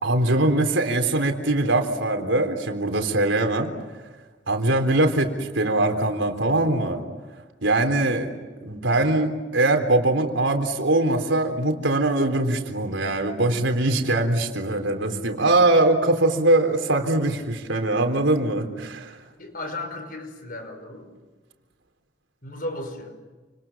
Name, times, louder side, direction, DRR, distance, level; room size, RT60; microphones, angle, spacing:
voice 1, 0.0-3.7 4.5-7.0 7.6-8.3 8.6-19.2, right 2 dB, 85° right, 5 dB, 3.8 m, -22 dB
voice 2, 19.4-21.1 22.4-23.2, left 1 dB, 50° left, 7 dB, 5.4 m, -35 dB
29.5 x 27.5 x 7.4 m, 1.3 s
head